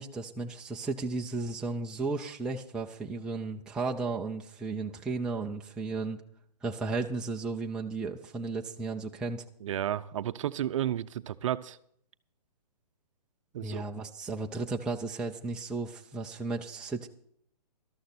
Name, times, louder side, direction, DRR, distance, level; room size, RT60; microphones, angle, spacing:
voice 1, 0.0-6.2 6.6-9.4 13.6-17.1, right 3 dB, 5° right, 0 dB, 0.4 m, -34 dB
voice 2, 9.6-11.8 13.5-13.8, right 11 dB, 50° right, 13 dB, 0.6 m, -32 dB
13.0 x 13.0 x 4.3 m, 0.68 s
hypercardioid pair, 150°, 21 cm